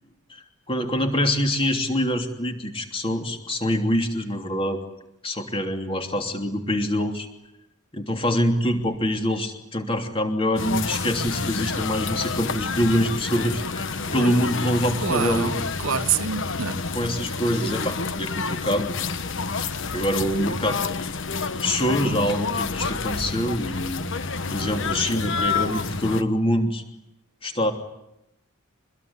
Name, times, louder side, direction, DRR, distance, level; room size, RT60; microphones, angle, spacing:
voice 1, 0.3-4.8 5.2-7.3 7.9-15.6 16.9-19.0 19.9-20.8 21.6-24.0 24.5-26.8 27.4-27.7, equal, 25° left, 3.1 m, -25 dB
sound 1, 10.6-26.2, left 4 dB, 60° left, 1.3 m, -29 dB
voice 2, 14.0-14.4 15.0-16.8, right 7 dB, 70° right, 1.1 m, -27 dB
25.0 x 21.5 x 9.8 m
head